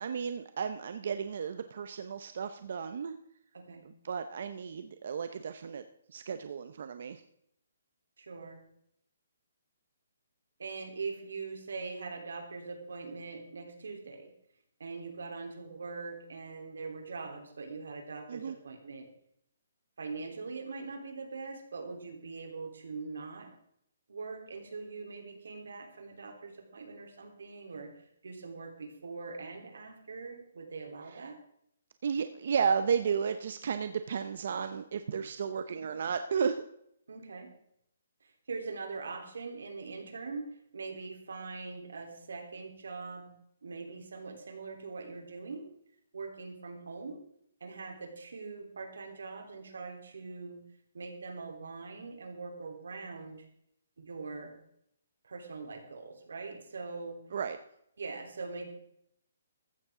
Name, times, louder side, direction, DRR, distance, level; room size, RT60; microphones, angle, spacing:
voice 1, 0.0-3.1 4.0-7.2 18.3-18.6 31.1-31.2 32.0-36.6 57.3-57.6, right 6 dB, 45° right, 9 dB, 0.6 m, -33 dB
voice 2, 8.2-8.6 10.6-14.3 14.8-19.1 20.0-23.5 24.1-27.9 28.2-31.4 37.1-37.5 38.5-43.3 43.6-45.7 46.1-47.2 47.6-50.6 50.9-53.5 54.0-54.5 55.2-57.2 58.0-58.7, right 4 dB, 85° right, 3 dB, 3.4 m, -42 dB
15.0 x 13.0 x 3.7 m, 0.73 s
hypercardioid pair, 180°, 0 cm